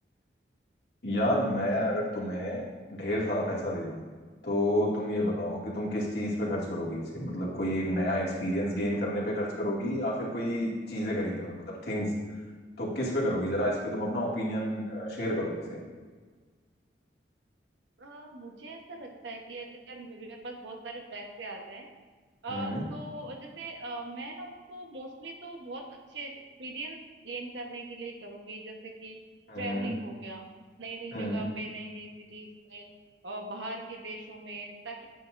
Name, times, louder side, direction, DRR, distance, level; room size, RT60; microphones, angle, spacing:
voice 1, 1.0-2.6 2.9-4.0 4.4-12.1 12.8-15.8 22.5-22.9 29.5-29.9 31.1-31.5, equal, 70° left, -5 dB, 2.2 m, -30 dB
voice 2, 18.0-21.9 22.4-26.3 26.6-29.2 29.6-30.5 30.8-32.9 33.2-35.1, right 2 dB, 90° right, 1 dB, 1.2 m, -41 dB
9.1 x 8.6 x 2.6 m, 1.4 s
head